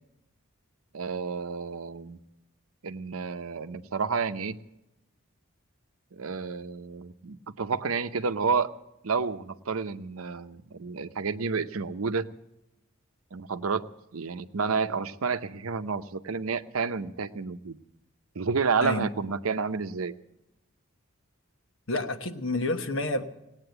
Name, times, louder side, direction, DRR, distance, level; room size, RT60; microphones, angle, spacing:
voice 1, 0.9-2.2 2.8-4.6 6.1-8.7 9.0-12.3 13.3-13.9 14.1-17.8 18.4-20.1, right 5 dB, 90° right, 10 dB, 0.7 m, -30 dB
voice 2, 21.9-23.2, left 2 dB, 70° left, 7 dB, 1.2 m, -29 dB
18.5 x 8.9 x 7.8 m, 0.91 s
head